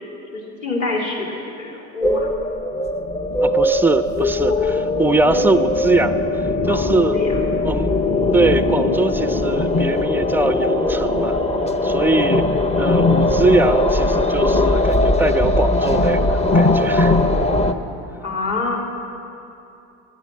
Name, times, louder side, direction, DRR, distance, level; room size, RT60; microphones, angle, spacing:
voice 1, 0.3-2.3 6.7-7.4 18.2-18.8, left 3 dB, 45° left, -3 dB, 3.4 m, -26 dB
sound 1, 2.0-17.7, left 2 dB, 15° left, 0.8 m, -19 dB
voice 2, 3.4-7.2 7.6-11.4 11.8-12.5 12.8-17.2, right 2 dB, 5° right, 11 dB, 0.4 m, -21 dB
13.0 x 10.0 x 8.4 m, 2.8 s
supercardioid pair, 105°, 39 cm